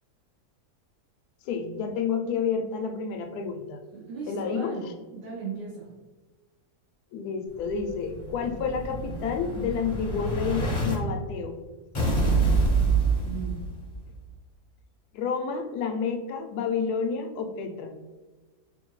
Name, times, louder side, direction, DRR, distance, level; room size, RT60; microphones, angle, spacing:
voice 1, 1.5-3.8 4.3-4.9 7.1-11.5 15.1-17.9, left 6 dB, 75° left, 5 dB, 1.1 m, -30 dB
voice 2, 3.9-5.8 13.2-13.5, right 5 dB, 80° right, -5 dB, 1.6 m, -37 dB
Explosion, 7.6-10.9 11.9-14.0, right 3 dB, 25° left, 0.7 m, -26 dB
5.0 x 2.6 x 3.0 m, 1.3 s
omnidirectional pair, 1.7 m